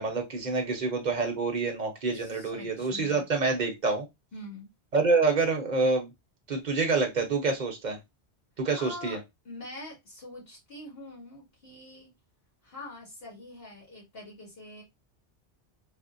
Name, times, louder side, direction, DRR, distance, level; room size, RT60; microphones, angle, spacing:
voice 1, 0.0-4.0 4.9-6.1 6.5-8.0 8.6-9.2, right 4 dB, 45° right, 0.9 m, -27 dB
voice 2, 2.1-3.3 4.3-4.7 8.7-9.2 9.4-12.1 12.6-14.8, left 2 dB, 60° left, 2.0 m, -44 dB
4.2 x 2.0 x 2.5 m
omnidirectional pair, 1.2 m